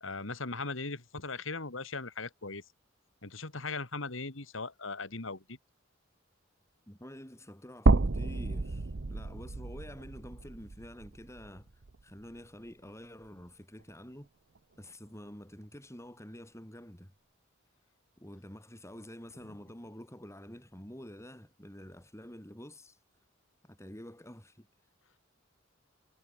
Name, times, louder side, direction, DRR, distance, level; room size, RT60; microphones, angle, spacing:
voice 1, 0.0-2.6 3.2-5.6, left 3 dB, 75° left, 2.6 m, -39 dB
voice 2, 6.9-14.3 14.8-17.1 18.2-23.0 23.6-24.7, equal, 15° left, 7.1 m, -48 dB
sound 1, 7.9-12.0 12.4-12.5 13.9-14.0, right 3 dB, 65° right, 0.9 m, -30 dB
head